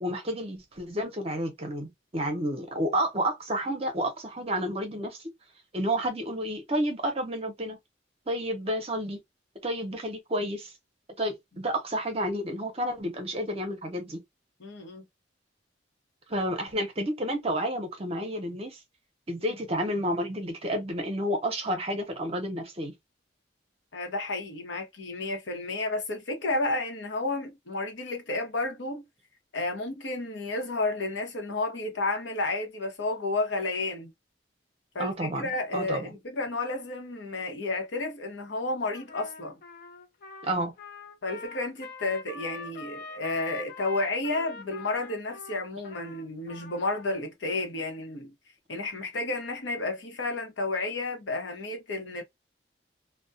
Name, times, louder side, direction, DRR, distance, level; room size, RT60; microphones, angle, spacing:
voice 1, 0.0-5.2 5.7-7.8 8.3-9.2 9.6-10.7 11.2-14.2 16.3-18.8 19.3-22.9 35.0-36.1 40.4-40.7, equal, 35° right, 0.7 m, -30 dB
voice 2, 14.6-15.0 23.9-29.0 29.5-34.1 34.9-39.6 41.2-48.3 48.7-52.2, left 2 dB, 80° left, 0.8 m, -31 dB
Trumpet, 38.9-47.2, left 4 dB, 50° left, 0.5 m, -44 dB
2.2 x 2.1 x 2.6 m
head